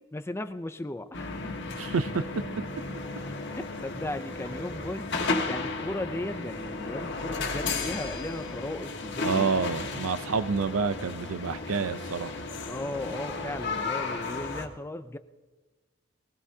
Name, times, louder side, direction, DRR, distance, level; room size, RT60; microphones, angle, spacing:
voice 1, 0.1-1.3 3.5-9.5 12.6-15.2, left 1 dB, 10° left, 10 dB, 0.4 m, -36 dB
sound 1, 1.1-14.7, left 3 dB, 55° left, 1.6 m, -34 dB
voice 2, 1.8-2.2 9.2-12.3, right 5 dB, 75° right, 13 dB, 0.6 m, -28 dB
20.5 x 19.0 x 2.8 m, 1.3 s
head